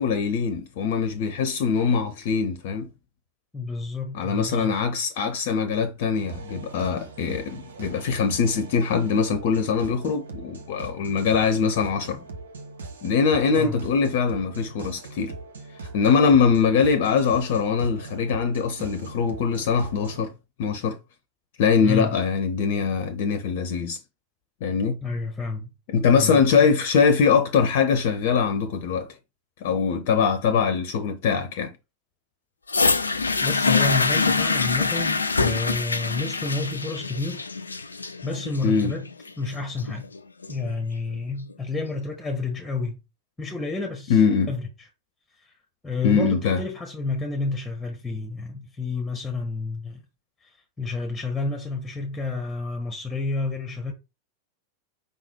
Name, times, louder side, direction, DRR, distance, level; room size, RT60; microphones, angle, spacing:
voice 1, 0.0-2.9 4.1-12.2 13.0-15.3 15.8-20.3 20.6-21.0 21.6-24.0 24.6-25.0 25.9-29.1 29.6-31.7 38.6-38.9 44.1-44.5 46.0-46.6, left 6 dB, 50° left, 0.8 m, -22 dB
voice 2, 3.5-4.7 13.5-13.8 21.8-22.1 25.0-25.7 26.1-26.7 33.4-37.4 38.2-39.1 39.4-40.1 40.5-43.0 43.4-44.2 44.5-44.9 45.4-45.5 45.8-50.0 50.4-53.9, left 3 dB, 10° left, 1.3 m, -30 dB
sound 1, 6.1-20.3, right 3 dB, 70° right, 1.1 m, -40 dB
sound 2, 32.7-40.7 41.5-41.6, left 4 dB, 75° left, 0.4 m, -25 dB
5.2 x 4.0 x 4.5 m
figure-of-eight pair, 90°, 0 cm